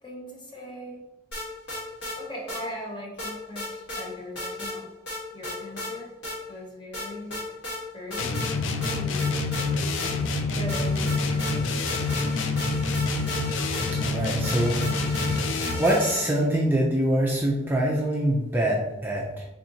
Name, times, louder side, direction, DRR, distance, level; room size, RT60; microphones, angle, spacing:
voice 1, 0.0-1.1 2.2-4.9 5.3-6.1 6.5-7.6 7.9-8.4 8.9-9.4 10.6-11.8, equal, 25° left, -1 dB, 0.7 m, -39 dB
sound 1, 1.3-2.2 2.5-2.6 3.2-4.1 4.4-4.8 5.1-5.9 6.2-6.4 6.9-7.8 8.1-8.5 8.8-10.4 10.7-16.5, left 1 dB, 65° left, 1.4 m, -35 dB
sound 2, 8.2-15.9, left 3 dB, 80° left, 0.4 m, -27 dB
voice 2, 13.9-19.5, right 1 dB, 10° right, -3 dB, 0.4 m, -25 dB
4.0 x 3.5 x 2.7 m, 1.0 s
head